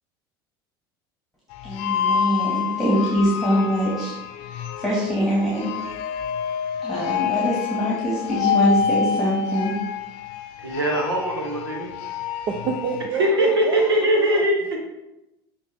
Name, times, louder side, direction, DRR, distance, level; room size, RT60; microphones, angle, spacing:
sound 1, 1.5-13.1, left 7 dB, 60° left, 0.6 m, -27 dB
voice 1, 1.6-5.7 6.8-9.8, equal, ahead, -6 dB, 2.1 m, -24 dB
voice 2, 10.6-11.9 13.1-14.8, right 1 dB, 90° right, 0 dB, 1.4 m, -21 dB
voice 3, 12.5-14.4, right 6 dB, 45° right, 3 dB, 0.7 m, -28 dB
8.8 x 3.5 x 3.5 m, 0.93 s
hypercardioid pair, 75°, 12 cm